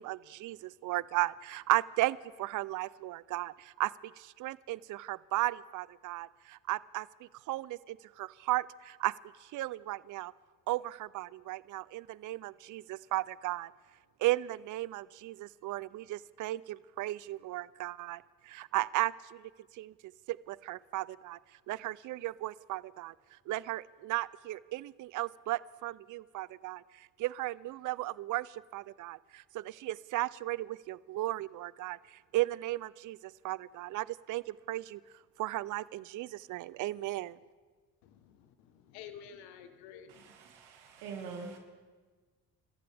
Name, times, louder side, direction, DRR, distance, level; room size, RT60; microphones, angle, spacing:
voice 1, 0.0-9.1 9.4-10.3 10.7-13.7 14.2-19.9 20.3-21.4 21.7-23.1 23.5-35.0 35.4-37.4, right 17 dB, 50° right, 20 dB, 0.5 m, -35 dB
voice 2, 38.0-40.4, left 8 dB, 85° left, 9 dB, 1.2 m, -51 dB
voice 3, 40.1-41.6, right 5 dB, 85° right, 2 dB, 2.0 m, -44 dB
29.0 x 14.5 x 3.4 m, 1.4 s
supercardioid pair, 65°, 39 cm